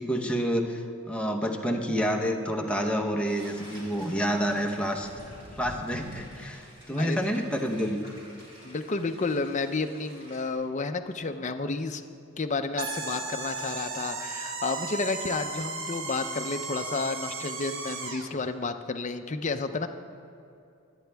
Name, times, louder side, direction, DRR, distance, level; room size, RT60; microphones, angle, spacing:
voice 1, 0.0-5.1 5.6-8.0, equal, 5° left, 1 dB, 0.9 m, -28 dB
sound 1, 3.3-10.5, equal, 25° right, 3.3 m, -48 dB
voice 2, 8.6-12.0 12.4-19.9, left 3 dB, 35° left, 7 dB, 0.6 m, -31 dB
sound 2, 12.8-18.3, right 3 dB, 70° right, 1.1 m, -35 dB
22.5 x 9.1 x 3.5 m, 2.6 s
head